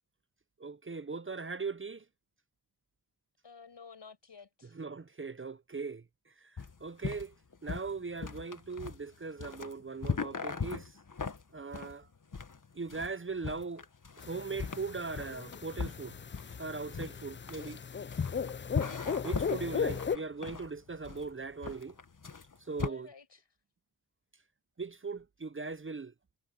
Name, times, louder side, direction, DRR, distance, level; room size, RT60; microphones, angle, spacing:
voice 1, 0.6-2.0 4.7-7.4 7.6-11.0 11.5-12.1 12.7-13.8 14.2-16.2 16.6-17.8 19.2-22.0 22.6-23.1 24.8-26.1, right 4 dB, 30° right, 0.6 m, -39 dB
voice 2, 3.4-4.8 19.5-19.9 22.8-23.4, left 5 dB, 80° left, 5.6 m, -52 dB
sound 1, 6.6-22.9, left 5 dB, 45° left, 1.5 m, -39 dB
sound 2, 14.2-20.2, left 6 dB, 30° left, 0.4 m, -37 dB
cardioid pair, 50°, 42 cm